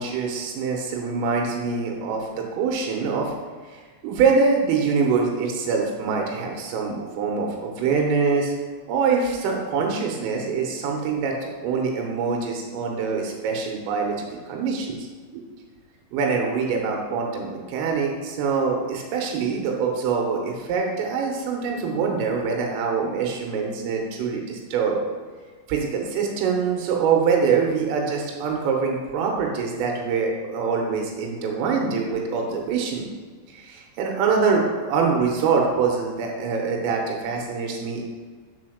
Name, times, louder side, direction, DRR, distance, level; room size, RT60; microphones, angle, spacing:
voice 1, 0.0-3.3 3.7-8.5 8.9-15.0 15.3-15.4 16.1-25.0 25.7-33.1 33.5-38.0, right 5 dB, 85° right, 1 dB, 3.5 m, -24 dB
7.2 x 4.3 x 6.2 m, 1.5 s
omnidirectional pair, 5.8 m